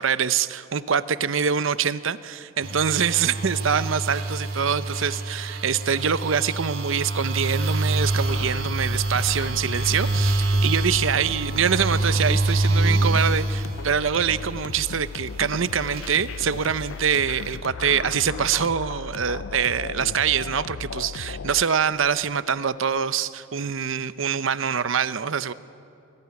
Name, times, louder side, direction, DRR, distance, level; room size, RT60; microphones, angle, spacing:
voice 1, 0.0-25.5, right 7 dB, 70° right, 15 dB, 0.7 m, -24 dB
sound 1, 2.6-15.0 15.4-17.6, right 2 dB, 85° right, 2.9 m, -26 dB
sound 2, 8.0-21.6, left 5 dB, 75° left, 0.5 m, -36 dB
28.0 x 19.0 x 9.6 m, 2.8 s
head